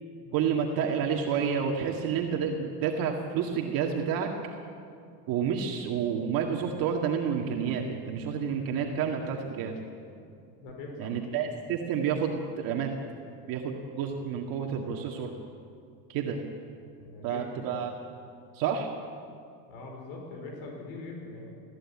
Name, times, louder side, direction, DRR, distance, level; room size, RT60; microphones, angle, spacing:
voice 1, 0.3-4.3 5.3-9.7 11.0-12.9 13.5-15.3 16.1-16.4 17.2-17.9 18.5-18.9, right 7 dB, 45° right, 1 dB, 2.1 m, -29 dB
voice 2, 10.6-11.1 17.0-17.4 19.7-21.5, left 3 dB, 55° left, 1 dB, 5.1 m, -42 dB
20.5 x 15.5 x 8.7 m, 2.4 s
supercardioid pair, 140°, 49 cm